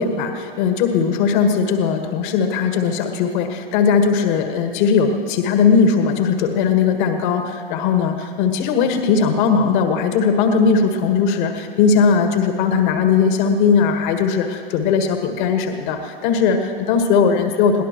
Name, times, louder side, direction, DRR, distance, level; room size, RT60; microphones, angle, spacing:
voice 1, 0.0-17.8, left 5 dB, 50° left, 5 dB, 1.6 m, -18 dB
22.5 x 17.5 x 3.1 m, 2.3 s
hypercardioid pair, 105°, 30 cm